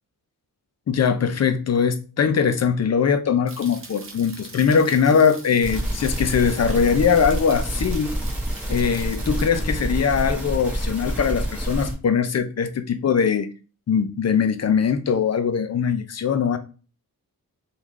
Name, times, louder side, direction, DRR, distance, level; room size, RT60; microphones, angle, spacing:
voice 1, 0.9-8.2 8.7-13.5 13.9-16.6, left 6 dB, 45° left, 0.4 m, -21 dB
sound 1, 3.5-9.5, right 3 dB, 35° right, 0.7 m, -42 dB
sound 2, 5.6-11.9, equal, 5° right, 1.2 m, -27 dB
3.6 x 2.3 x 3.1 m
wide cardioid pair, 120°, 37 cm